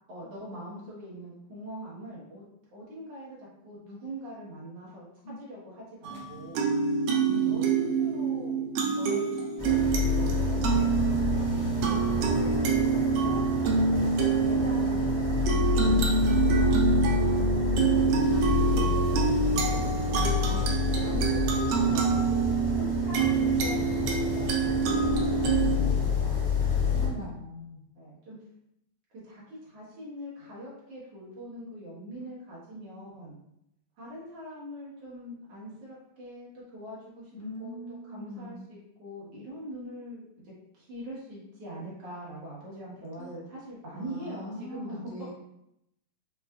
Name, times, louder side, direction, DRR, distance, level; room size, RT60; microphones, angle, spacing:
voice 1, 0.1-2.5 2.7-5.0 5.4-6.6 7.4-8.6 8.9-9.3 10.2-12.9 13.2-13.5 13.9-15.1 15.8-25.5 25.8-26.5 27.1-27.3 27.9-28.4 29.1-33.4 34.0-37.3 37.6-45.3, equal, 65° right, -7 dB, 1.9 m, -43 dB
sound 1, 6.0-25.8, right 5 dB, 85° right, 2.0 m, -26 dB
voice 2, 7.3-7.7 15.8-16.2 26.9-27.8 37.3-38.6 43.2-43.4 43.9-45.3, left 1 dB, 75° left, -3 dB, 1.9 m, -40 dB
sound 2, 9.6-27.1, left 5 dB, 40° left, 0.5 m, -29 dB
5.4 x 2.3 x 2.2 m, 0.81 s
omnidirectional pair, 3.3 m